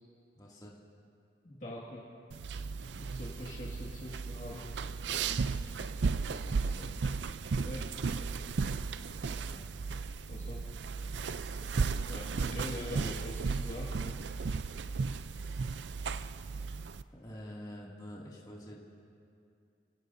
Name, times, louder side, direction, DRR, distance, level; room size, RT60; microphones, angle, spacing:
voice 1, 0.3-0.8 6.6-6.9 9.4-9.7 15.2-15.6 17.1-18.8, equal, 20° left, -4 dB, 2.4 m, -48 dB
voice 2, 1.4-2.0 2.9-4.6 7.6-7.9 10.3-10.6 12.1-13.9, left 1 dB, 45° left, -4 dB, 1.9 m, -43 dB
sound 1, 2.3-17.0, right 4 dB, 85° right, 0.5 m, -35 dB
29.5 x 17.0 x 2.7 m, 2.5 s
head